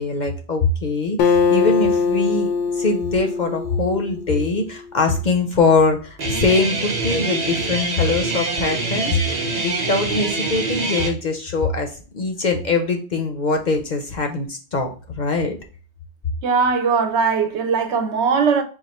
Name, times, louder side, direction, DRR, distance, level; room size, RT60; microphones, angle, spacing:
voice 1, 0.0-15.6, left 3 dB, 50° left, 0.6 m, -22 dB
Acoustic guitar, 1.2-4.8, left 5 dB, 80° left, 0.9 m, -21 dB
Guitar, 6.2-11.1, right 3 dB, 40° right, 0.9 m, -24 dB
voice 2, 16.4-18.6, right 5 dB, 75° right, 0.9 m, -19 dB
4.1 x 2.4 x 4.1 m
omnidirectional pair, 1.2 m